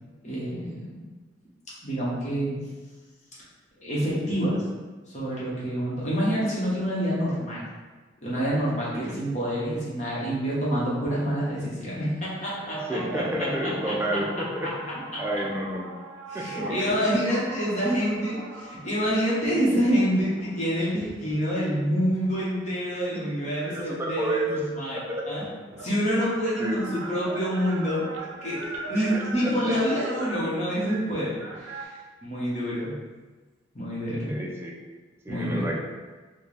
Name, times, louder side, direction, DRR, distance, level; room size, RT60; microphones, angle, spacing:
voice 1, 0.2-1.0 1.8-2.6 3.8-4.6 5.1-7.6 8.2-14.2 14.6-14.7 15.1-15.2 16.3-25.4 25.8-32.0 32.2-33.0 33.7-34.4 35.3-35.7, equal, 35° left, -7 dB, 1.1 m, -27 dB
sound 1, 12.4-21.2 21.9-23.6 24.8-24.9 25.1-31.9, right 3 dB, 85° right, 0.5 m, -40 dB
voice 2, 12.9-15.9 16.3-17.0 22.9-23.2 23.7-24.6 24.9-25.4 26.6-27.0 28.9-29.8 34.3-34.7 35.2-35.8, right 1 dB, 15° right, -2 dB, 0.4 m, -31 dB
4.4 x 2.2 x 3.3 m, 1.3 s
head